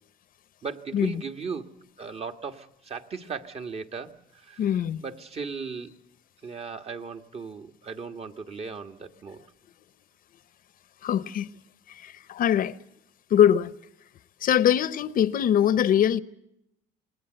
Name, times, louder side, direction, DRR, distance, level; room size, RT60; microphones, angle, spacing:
voice 1, 0.6-1.7 2.0-4.7 5.0-5.9 6.4-9.4, right 5 dB, 35° right, 1.7 m, -37 dB
voice 2, 4.6-5.0 11.0-11.5 12.0-12.7 13.3-13.7 14.4-16.2, left 10 dB, 55° left, 0.9 m, -22 dB
27.5 x 20.5 x 7.9 m
cardioid pair, 110°, 17 cm